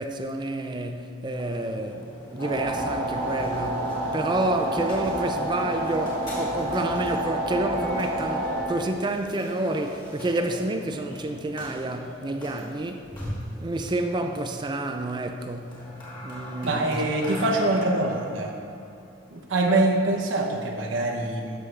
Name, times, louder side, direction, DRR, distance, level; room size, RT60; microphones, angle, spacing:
voice 1, 0.0-13.1 13.6-15.8 16.2-17.0, right 2 dB, 25° right, 0.4 m, -29 dB
sound 1, 1.3-20.3, left 1 dB, 25° left, 2.3 m, -42 dB
sound 2, 2.4-8.6, right 1 dB, 75° left, 2.4 m, -29 dB
voice 2, 16.6-18.5 19.3-21.6, right 2 dB, 85° right, 0.8 m, -24 dB
13.0 x 6.2 x 3.3 m
head